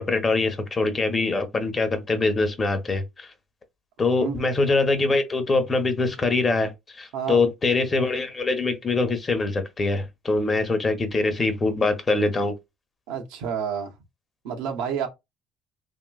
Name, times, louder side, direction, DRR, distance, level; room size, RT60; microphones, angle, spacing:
voice 1, 0.0-3.3 4.0-12.5, left 3 dB, 25° left, 0.8 m, -23 dB
voice 2, 7.1-7.4 13.1-13.9 14.4-15.1, right 7 dB, 90° right, 0.8 m, -29 dB
2.9 x 2.9 x 2.3 m
cardioid pair, 120°, 0 cm